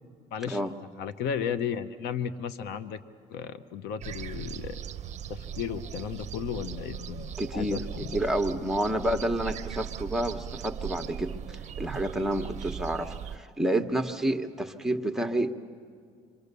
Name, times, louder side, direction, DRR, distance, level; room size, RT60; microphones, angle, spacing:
voice 1, 0.3-0.7 1.0-3.0 3.3-4.8 5.3-8.2, left 8 dB, 85° left, 11 dB, 0.9 m, -34 dB
sound 1, 4.0-13.4, right 8 dB, 45° right, 0.7 m, -38 dB
voice 2, 7.4-11.3 11.8-15.7, right 1 dB, 5° right, 5 dB, 1.1 m, -29 dB
27.0 x 24.0 x 6.8 m, 2.2 s
cardioid pair, 110°, 17 cm